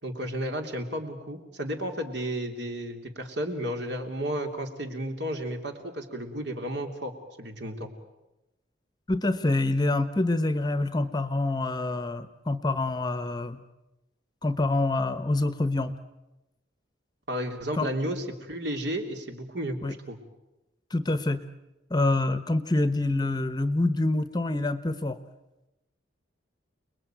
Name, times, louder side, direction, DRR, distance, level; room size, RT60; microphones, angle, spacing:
voice 1, 0.0-7.1 7.4-7.9 17.3-19.8 20.1-20.2, equal, 60° right, 5 dB, 3.3 m, -33 dB
voice 2, 9.1-13.6 14.4-16.0 17.8-17.9 19.8-19.9 20.9-21.4 21.9-25.2, left 2 dB, 20° left, 12 dB, 1.0 m, -26 dB
30.0 x 21.0 x 9.2 m, 0.99 s
head